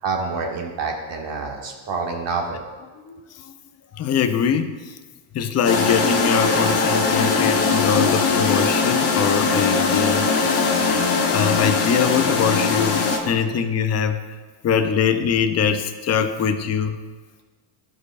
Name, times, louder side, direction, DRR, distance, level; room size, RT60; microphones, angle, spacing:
voice 1, 0.0-2.6, right 4 dB, 55° right, 1 dB, 1.4 m, -27 dB
voice 2, 3.9-4.8 5.3-10.9 11.3-14.2 14.6-17.0, left 7 dB, 30° left, 8 dB, 0.5 m, -23 dB
sound 1, 5.6-13.2, left 4 dB, 50° left, 1.4 m, -20 dB
11.5 x 4.8 x 2.4 m, 1.4 s
supercardioid pair, 95°, 50 cm